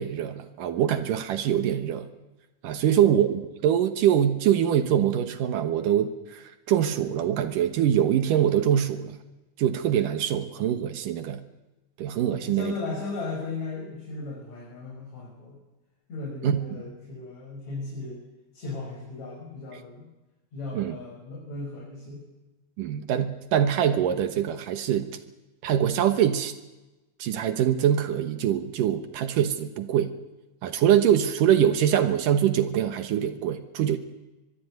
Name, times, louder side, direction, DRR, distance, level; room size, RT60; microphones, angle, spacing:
voice 1, 0.0-2.1 2.6-9.2 9.6-11.4 12.0-12.7 16.4-16.8 20.7-21.0 22.8-25.2 25.6-26.5 27.2-30.1 30.6-34.0, right 10 dB, 75° right, 10 dB, 2.8 m, -24 dB
voice 2, 12.3-15.6 16.1-18.2 18.5-20.0 20.5-22.2, left 3 dB, 55° left, -3 dB, 7.5 m, -36 dB
24.0 x 22.0 x 9.4 m, 1.1 s
omnidirectional pair, 3.9 m